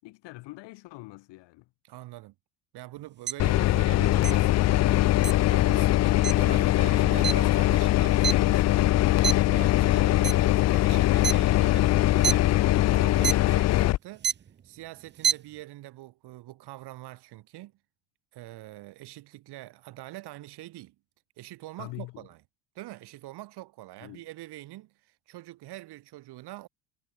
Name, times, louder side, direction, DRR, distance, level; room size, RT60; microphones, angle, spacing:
voice 1, 0.0-1.7 21.8-22.3 24.0-24.3, left 21 dB, 75° left, 7.1 m, -44 dB
voice 2, 1.8-2.3 2.7-14.3 14.6-17.7 18.3-20.9 21.4-22.4 22.7-26.7, right 17 dB, 65° right, 3.4 m, -44 dB
sound 1, 3.3-3.4 4.2-4.3 5.2-5.3 6.2-6.3 7.2-7.3 7.8-8.9 9.2-9.5 10.1-10.5 11.2-11.3 12.1-12.3 13.2-13.3 14.2-14.5 15.1-15.3, right 8 dB, 25° right, 0.8 m, -27 dB
sound 2, 3.4-14.0, left 15 dB, 40° left, 0.5 m, -22 dB
cardioid pair, 135°, 43 cm